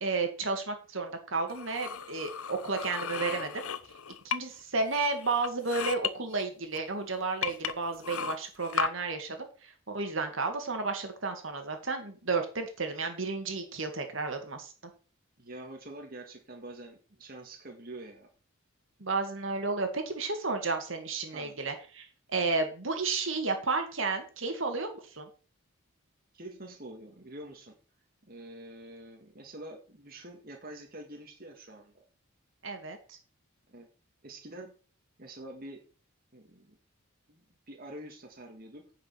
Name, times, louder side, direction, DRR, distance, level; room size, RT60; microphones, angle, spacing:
voice 1, 0.0-3.6 4.2-14.7 19.0-25.3 32.6-33.2, right 3 dB, 65° right, 5 dB, 2.1 m, -32 dB
sound 1, 1.5-4.6 4.9-6.1 6.7-6.8 7.4-8.9, left 8 dB, 85° left, 0.8 m, -35 dB
voice 2, 15.4-18.3 21.3-21.6 26.3-27.8 28.2-32.1 33.7-33.9 34.2-34.7 35.2-35.8 36.3-36.8 37.3-38.8, right 1 dB, 45° right, 2 dB, 1.9 m, -46 dB
9.9 x 5.3 x 7.0 m, 0.37 s
head